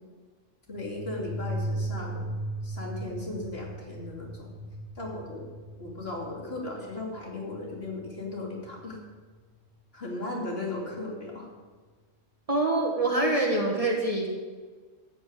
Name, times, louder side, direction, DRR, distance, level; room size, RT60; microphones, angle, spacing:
voice 1, 0.7-2.3 2.6-4.5 4.9-5.5 5.8-9.0 9.9-11.5, left 2 dB, 50° left, -2 dB, 2.9 m, -36 dB
sound 1, 0.7-9.1, right 1 dB, 10° right, 2.6 m, -37 dB
voice 2, 12.5-14.3, right 2 dB, 30° right, -1 dB, 1.8 m, -25 dB
13.5 x 5.4 x 9.3 m, 1.4 s
omnidirectional pair, 1.3 m